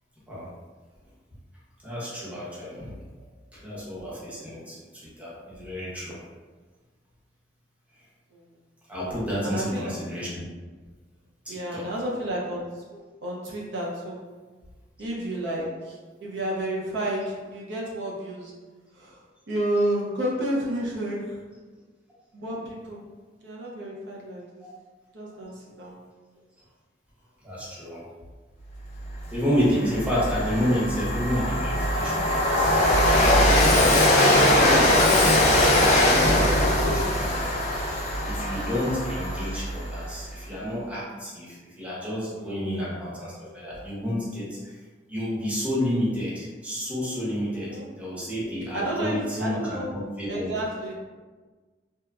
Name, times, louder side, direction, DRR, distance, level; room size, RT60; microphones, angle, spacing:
voice 1, 1.8-3.0 3.5-6.2 8.9-10.5 11.5-11.8 27.4-28.0 29.3-32.8 33.4-37.6 38.2-44.8 45.1-50.5, equal, 10° right, -8 dB, 0.7 m, -30 dB
voice 2, 9.4-10.0 11.5-14.3 15.0-18.5 18.9-21.5 22.3-23.1 23.4-24.7 25.1-26.0 42.3-42.8 47.5-47.9 48.7-49.9 50.3-50.9, right 1 dB, 75° right, -3 dB, 0.5 m, -31 dB
Train, 29.1-29.2 29.6-40.0, left 1 dB, 40° left, 0.4 m, -21 dB
2.8 x 2.2 x 2.3 m, 1.3 s
head